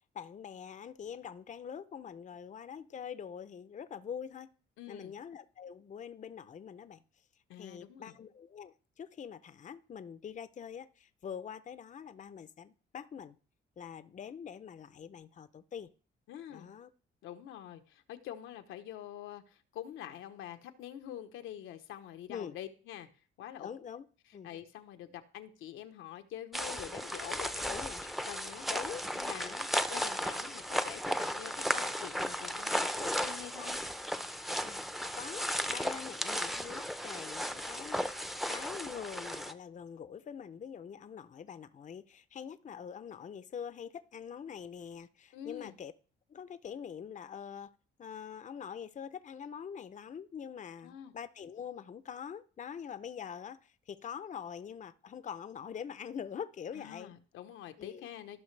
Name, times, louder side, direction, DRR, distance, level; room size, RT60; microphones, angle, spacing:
voice 1, 0.0-4.5 4.9-7.0 7.6-13.4 13.8-15.9 16.5-16.9 22.3-22.6 23.6-24.0 24.3-24.5 27.7-28.0 28.7-29.7 34.6-34.8 35.2-45.9 46.3-47.7 48.0-57.1 57.8-58.1, left 7 dB, 40° left, 0.6 m, -44 dB
voice 2, 4.8-5.1 7.5-8.2 16.3-16.7 17.2-23.1 23.4-23.7 24.4-28.7 29.1-29.5 29.9-33.8 45.3-45.7 50.8-51.1 56.7-58.4, left 11 dB, 90° left, 0.9 m, -46 dB
sound 1, 26.5-39.5, equal, ahead, 0.6 m, -35 dB
15.0 x 5.7 x 3.3 m
cardioid pair, 90°, 20 cm